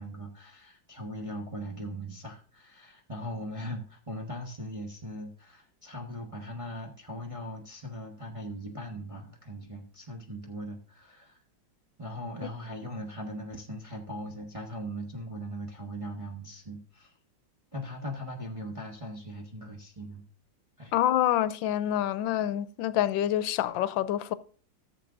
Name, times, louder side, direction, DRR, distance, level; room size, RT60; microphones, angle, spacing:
voice 1, 0.0-11.4 12.0-17.2 17.7-20.2 20.8-20.9, equal, 20° right, 1.1 m, -39 dB
voice 2, 20.9-24.3, left 12 dB, 85° left, 1.3 m, -27 dB
15.0 x 7.2 x 2.5 m
omnidirectional pair, 2.0 m